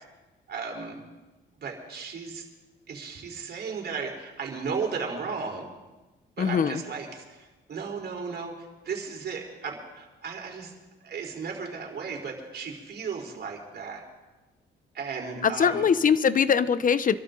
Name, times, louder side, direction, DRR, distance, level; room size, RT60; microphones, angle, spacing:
voice 1, 0.5-1.0 1.6-2.4 2.9-5.7 6.4-8.5 8.8-10.7 11.0-14.0 14.9-15.8, right 5 dB, 55° right, 0 dB, 4.3 m, -35 dB
voice 2, 6.4-6.8 15.4-17.1, left 7 dB, 45° left, 14 dB, 0.9 m, -22 dB
26.0 x 12.5 x 3.9 m, 1.1 s
cardioid pair, 90°, 20 cm